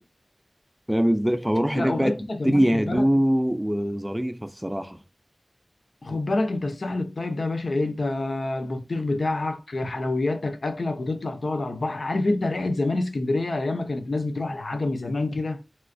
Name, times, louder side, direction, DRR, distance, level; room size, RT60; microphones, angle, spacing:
voice 1, 0.9-5.0, equal, 10° right, 0.4 m, -23 dB
voice 2, 1.8-3.1 6.0-15.6, left 2 dB, 85° left, 0.5 m, -27 dB
3.2 x 3.0 x 2.5 m
wide cardioid pair, 60°, 0 cm